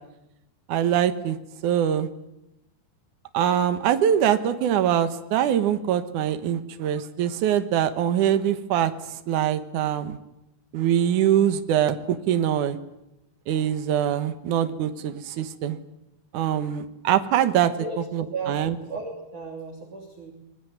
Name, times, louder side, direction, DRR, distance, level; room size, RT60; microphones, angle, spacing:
voice 1, 0.7-1.4 1.6-2.1 3.3-10.2 10.7-12.8 13.5-15.8 16.3-17.7 18.1-18.8, right 10 dB, 80° right, 9 dB, 1.8 m, -23 dB
voice 2, 18.3-20.3, right 4 dB, 45° right, 0 dB, 4.1 m, -35 dB
25.0 x 22.0 x 9.4 m, 0.88 s
omnidirectional pair, 5.6 m